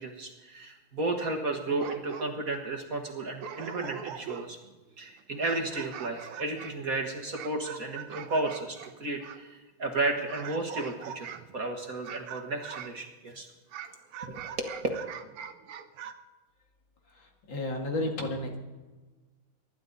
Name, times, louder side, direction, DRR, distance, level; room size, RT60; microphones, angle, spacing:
voice 1, 0.0-4.6 5.0-13.5 14.2-14.7, right 2 dB, 45° right, 3 dB, 1.7 m, -33 dB
sound 1, 1.7-2.6 3.1-3.2 3.4-4.7 5.2-9.5 10.3-11.6 12.0-13.0 13.7-16.1, right 8 dB, 80° right, 1.7 m, -42 dB
voice 2, 17.1-18.6, left 1 dB, 60° left, 2 dB, 2.7 m, -33 dB
23.5 x 12.0 x 4.0 m, 1.3 s
omnidirectional pair, 2.4 m